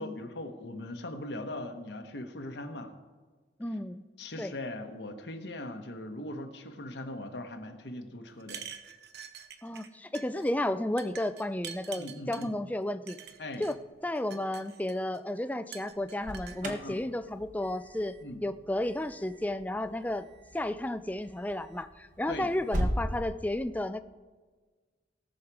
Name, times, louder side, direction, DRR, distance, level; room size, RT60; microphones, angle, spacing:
voice 1, 0.0-3.0 4.2-8.7 12.0-12.5 13.4-13.7 16.6-17.0 18.2-18.4 22.3-22.5, left 1 dB, 70° left, 5 dB, 1.1 m, -40 dB
voice 2, 3.6-4.0 4.4-4.5 9.6-13.2 13.6-13.8 14.0-18.1 18.4-20.3 20.5-24.0, left 1 dB, 10° left, 11 dB, 0.4 m, -32 dB
sound 1, 8.4-9.9 10.1-10.5 11.0-12.5 13.1-13.7 14.2-15.2 15.7-16.6, right 8 dB, 60° right, 0.8 m, -45 dB
Alarm, 15.9-23.0, equal, 45° right, 1.3 m, -39 dB
18.0 x 6.4 x 4.8 m, 1.4 s
head